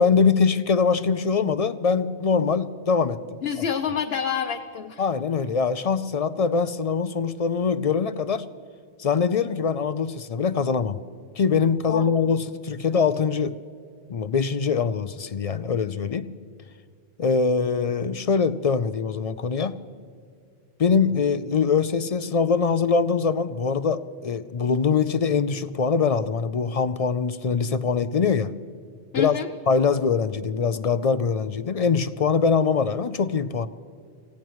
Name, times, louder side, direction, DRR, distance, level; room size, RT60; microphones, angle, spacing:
voice 1, 0.0-3.4 5.0-8.4 9.0-11.0 11.4-13.6 14.1-16.3 17.2-19.8 20.8-28.5 29.2-29.4 29.7-33.7, left 5 dB, 50° left, 13 dB, 0.5 m, -23 dB
voice 2, 3.4-5.1 11.9-12.1 29.1-29.5, left 7 dB, 75° left, 3 dB, 1.0 m, -28 dB
27.0 x 17.0 x 3.1 m, 2.2 s
omnidirectional pair, 1.0 m